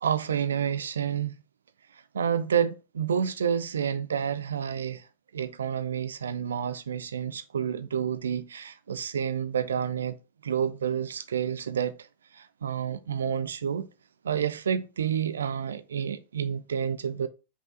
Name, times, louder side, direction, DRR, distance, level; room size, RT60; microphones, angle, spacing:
voice 1, 0.0-1.4 1.9-5.1 5.3-10.2 10.4-12.1 12.3-13.9 14.2-17.3, right 8 dB, 70° right, 0.3 m, -29 dB
5.5 x 2.4 x 3.7 m
figure-of-eight pair, 90°, 0 cm